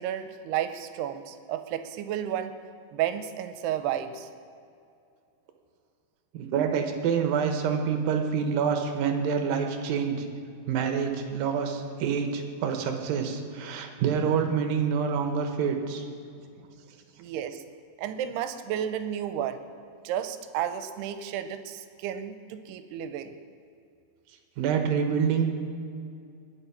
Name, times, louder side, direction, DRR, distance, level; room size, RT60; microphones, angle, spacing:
voice 1, 0.0-2.5 2.9-4.3 17.2-17.6 18.0-19.6 20.0-23.3, right 10 dB, 90° right, 9 dB, 2.7 m, -32 dB
voice 2, 6.3-10.3 10.7-16.0 24.6-25.5, right 6 dB, 70° right, 5 dB, 2.6 m, -27 dB
20.0 x 7.6 x 5.8 m, 2.5 s
omnidirectional pair, 4.7 m